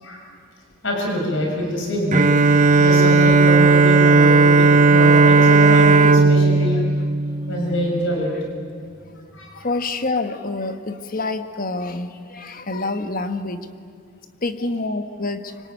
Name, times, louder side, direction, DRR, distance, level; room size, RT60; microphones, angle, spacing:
voice 1, 0.8-2.5 2.8-6.8 7.5-8.3 9.3-9.6, equal, 65° left, 0 dB, 6.5 m, -25 dB
Bowed string instrument, 2.1-8.0, right 3 dB, 35° right, 0.9 m, -14 dB
voice 2, 9.6-13.7 14.4-15.5, left 3 dB, 45° left, 9 dB, 1.4 m, -27 dB
25.0 x 25.0 x 9.3 m, 2.4 s
head